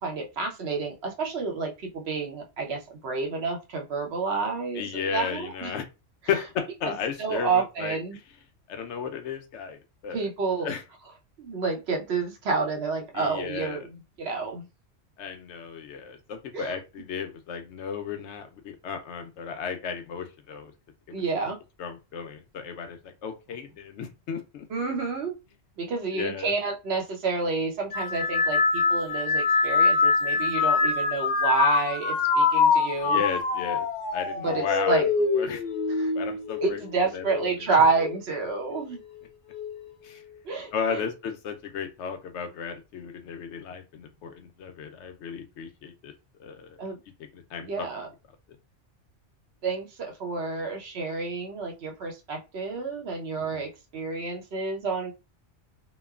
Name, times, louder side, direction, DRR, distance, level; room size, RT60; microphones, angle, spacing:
voice 1, 0.0-5.7 7.2-8.2 10.1-10.7 11.4-13.8 14.2-14.7 16.5-16.7 21.1-21.6 24.7-25.3 25.8-33.2 34.4-35.1 36.0-36.1 36.6-39.0 40.4-41.1 46.8-47.0 47.6-48.1 49.6-55.1, right 4 dB, 65° right, 2 dB, 0.9 m, -29 dB
voice 2, 4.7-5.9 6.3-8.0 8.7-10.3 10.6-10.8 13.1-13.8 15.2-20.7 21.1-21.2 21.8-24.7 26.1-26.5 33.0-33.9 34.1-35.6 36.1-36.8 37.1-37.7 40.0-40.2 40.7-46.1 46.4-46.9 47.3-47.9 53.4-53.6, left 6 dB, 75° left, 6 dB, 0.8 m, -34 dB
sound 1, 27.9-37.5 38.0-38.5 39.5-39.9, left 4 dB, 55° left, 0.5 m, -25 dB
3.0 x 2.1 x 2.3 m, 0.27 s
omnidirectional pair, 1.2 m